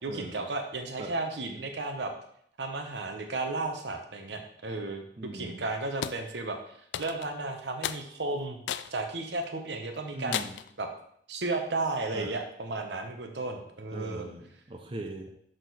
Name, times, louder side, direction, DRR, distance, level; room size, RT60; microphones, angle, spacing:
voice 1, 0.0-2.1 2.6-6.6 7.0-8.6 8.9-10.4 10.8-10.9 11.3-14.3, right 2 dB, 70° right, 5 dB, 0.9 m, -34 dB
voice 2, 5.2-5.6 10.1-10.5 12.1-12.3 13.9-15.3, right 2 dB, 30° right, 2 dB, 0.6 m, -40 dB
sound 1, 6.0-6.2 6.9-7.3 7.8-8.0 8.7-8.9 9.4-9.5 10.3-10.7, left 10 dB, 75° left, 0.3 m, -34 dB
6.2 x 4.4 x 4.1 m, 0.67 s
head